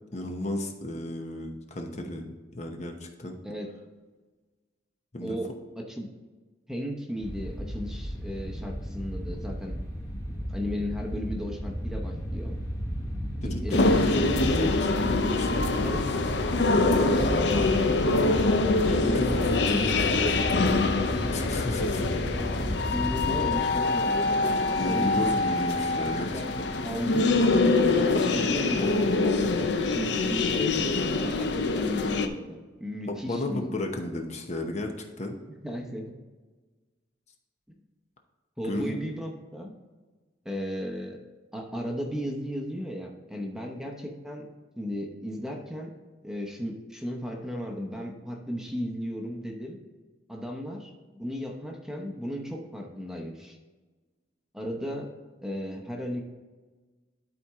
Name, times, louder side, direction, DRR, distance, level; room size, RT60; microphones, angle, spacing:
voice 1, 0.1-3.4 5.1-5.4 13.4-15.8 18.9-20.9 21.3-22.1 24.7-26.7 33.1-35.4 38.6-39.0, left 1 dB, 40° left, 3 dB, 0.8 m, -33 dB
voice 2, 5.2-6.1 6.7-9.8 10.3-12.6 13.4-14.3 15.8-16.0 16.7-19.6 19.9-20.1 21.1-21.4 22.1-22.5 22.9-25.4 25.9-26.5 26.8-27.4 28.0-33.7 35.6-36.1 37.7-37.8 38.6-39.7 40.4-41.2 41.5-44.4 44.8-45.9 46.2-49.8 50.3-53.6 54.5-55.1 55.4-56.2, equal, 5° right, 1 dB, 0.9 m, -35 dB
sound 1, 7.2-23.5, equal, 15° left, 1.1 m, -33 dB
sound 2, 13.7-32.3, left 3 dB, 70° left, 0.6 m, -25 dB
11.5 x 4.3 x 3.6 m, 1.3 s
head